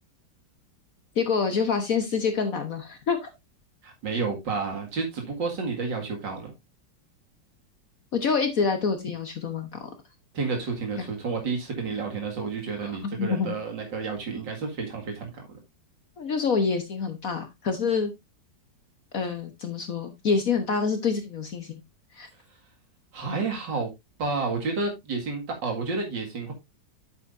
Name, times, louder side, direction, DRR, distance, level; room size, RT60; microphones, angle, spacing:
voice 1, 1.1-3.3 8.1-9.9 11.0-11.1 12.8-13.6 16.2-18.1 19.1-21.8 22.1-22.3, left 5 dB, 55° left, 1.5 m, -27 dB
voice 2, 3.8-6.5 10.3-15.6 23.1-23.9 24.2-26.5, right 4 dB, 85° right, 2.8 m, -30 dB
9.3 x 7.7 x 2.6 m
omnidirectional pair, 1.9 m